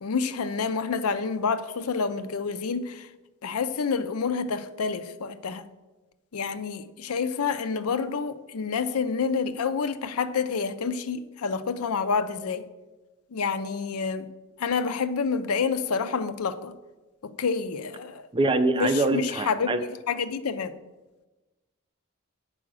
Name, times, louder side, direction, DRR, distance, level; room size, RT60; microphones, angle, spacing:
voice 1, 0.0-3.1 3.4-5.6 6.3-12.6 13.3-14.3 14.6-16.7 17.2-18.3 18.7-20.7, left 5 dB, 85° left, 0.5 m, -28 dB
voice 2, 18.3-19.8, right 2 dB, 25° right, 0.4 m, -24 dB
8.3 x 4.9 x 6.2 m
head